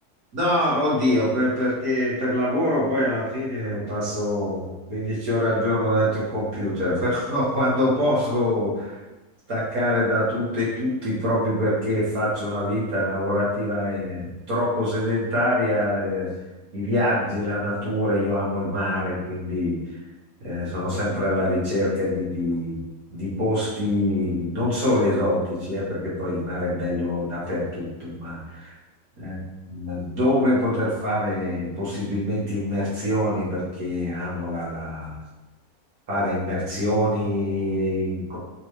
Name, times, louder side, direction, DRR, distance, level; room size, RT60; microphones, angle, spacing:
voice 1, 0.3-9.0 9.5-16.3 16.7-19.8 20.4-22.8 23.1-28.7 29.2-29.4 29.7-35.2 36.1-38.4, left 1 dB, 70° right, -8 dB, 2.0 m, -24 dB
4.3 x 3.2 x 3.1 m, 1.1 s
omnidirectional pair, 1.6 m